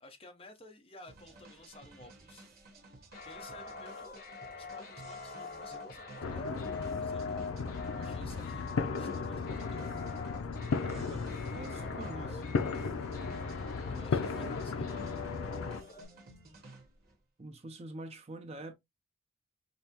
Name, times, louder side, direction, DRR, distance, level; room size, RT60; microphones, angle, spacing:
voice 1, 0.0-2.5 3.0-7.3 7.9-9.9 13.8-14.9, left 2 dB, 25° left, 0.8 m, -55 dB
sound 1, 1.1-17.2, right 2 dB, 45° right, 1.2 m, -54 dB
sound 2, 3.1-16.0, left 3 dB, 45° left, 1.4 m, -44 dB
sound 3, 6.2-15.8, left 5 dB, 80° left, 0.4 m, -36 dB
voice 2, 10.8-12.4 17.4-18.7, right 2 dB, 30° right, 0.4 m, -45 dB
5.3 x 2.1 x 2.8 m
head